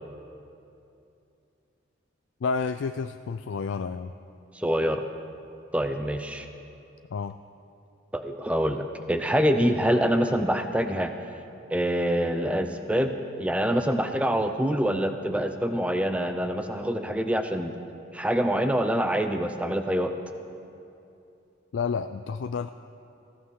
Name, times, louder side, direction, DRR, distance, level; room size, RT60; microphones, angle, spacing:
voice 1, 2.4-4.1 7.1-7.3 21.7-22.7, left 5 dB, 70° left, 9 dB, 0.3 m, -30 dB
voice 2, 4.6-5.0 5.7-6.5 8.1-11.1 11.7-17.7 18.1-20.1, equal, 5° right, 7 dB, 0.6 m, -25 dB
19.5 x 15.5 x 3.8 m, 2.7 s
head